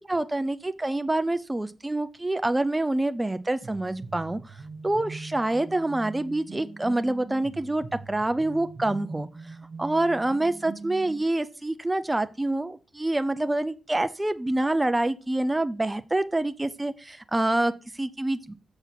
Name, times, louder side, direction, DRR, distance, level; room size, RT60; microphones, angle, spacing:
voice 1, 0.1-4.6 4.8-18.5, right 2 dB, 20° right, 11 dB, 0.5 m, -27 dB
sound 1, 3.6-11.2, right 4 dB, 60° right, 1.1 m, -42 dB
7.1 x 3.9 x 5.8 m, 0.35 s
supercardioid pair, 50°, 0 cm